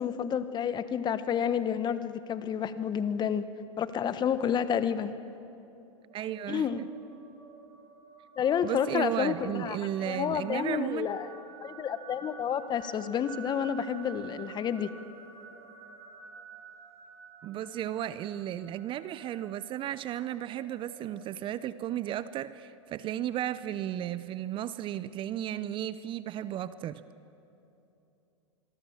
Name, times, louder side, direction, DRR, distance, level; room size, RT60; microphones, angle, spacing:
voice 1, 0.0-3.5 3.8-5.1 6.5-6.8 8.4-11.3 11.6-14.9, left 8 dB, 25° left, 12 dB, 1.2 m, -30 dB
voice 2, 6.1-6.9 8.6-11.1 17.4-27.0, right 11 dB, 30° right, 15 dB, 0.7 m, -34 dB
sound 1, 6.1-21.3, right 5 dB, 60° right, 3.8 m, -51 dB
26.0 x 22.5 x 7.3 m, 2.9 s
hypercardioid pair, 105°, 16 cm